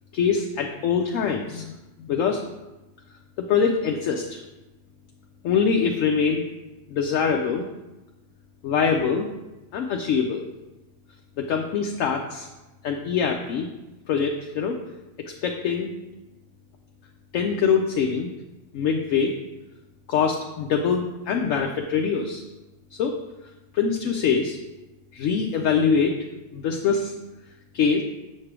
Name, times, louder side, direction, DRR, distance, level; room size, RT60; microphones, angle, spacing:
voice 1, 0.1-1.7 2.0-2.4 3.4-4.4 5.4-6.4 6.9-7.7 8.6-9.3 9.7-10.4 11.4-12.5 12.8-13.7 14.1-14.8 15.4-15.9 17.3-18.3 18.7-19.3 20.1-22.4 23.0-23.1 23.7-24.6 25.1-26.2 26.5-27.1 27.7-28.0, left 6 dB, 70° left, 2 dB, 0.9 m, -23 dB
7.4 x 3.2 x 5.9 m, 1.0 s
omnidirectional pair, 1.5 m